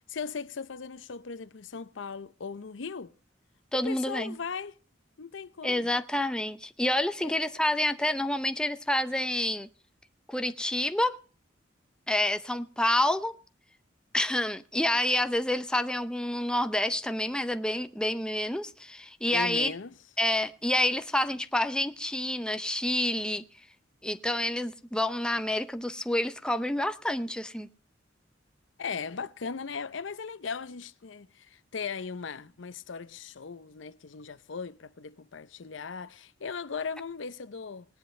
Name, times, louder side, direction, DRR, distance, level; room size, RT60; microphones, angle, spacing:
voice 1, 0.1-3.1 3.7-4.8 5.2-5.9 7.2-7.4 19.3-19.9 28.8-37.9, left 5 dB, 75° left, 0.6 m, -38 dB
voice 2, 3.7-4.4 5.6-9.7 10.3-11.2 12.1-13.4 14.1-19.7 20.2-23.4 24.0-27.7, left 1 dB, 5° left, 0.6 m, -28 dB
19.0 x 10.5 x 3.2 m
head